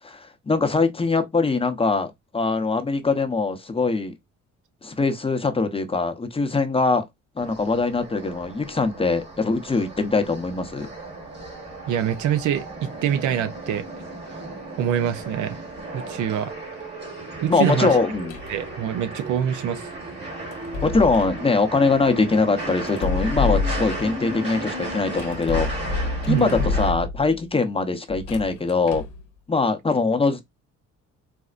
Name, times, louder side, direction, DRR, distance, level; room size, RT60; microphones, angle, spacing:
voice 1, 0.0-4.1 4.8-7.0 7.3-10.9 17.5-18.4 20.8-29.0 29.5-30.4, left 3 dB, 20° left, 0.7 m, -22 dB
sound 1, 7.4-26.9, right 2 dB, 35° right, 1.4 m, -35 dB
voice 2, 11.9-13.8 14.8-15.6 15.9-16.5 17.4-17.9 18.5-19.9 26.3-26.6, right 9 dB, 80° right, 0.6 m, -25 dB
sound 2, 18.3-18.6 20.5-21.4 22.9-24.2 25.2-27.4 28.1-29.2, left 4 dB, 80° left, 0.7 m, -28 dB
4.2 x 2.0 x 2.4 m
cardioid pair, 90°, 30 cm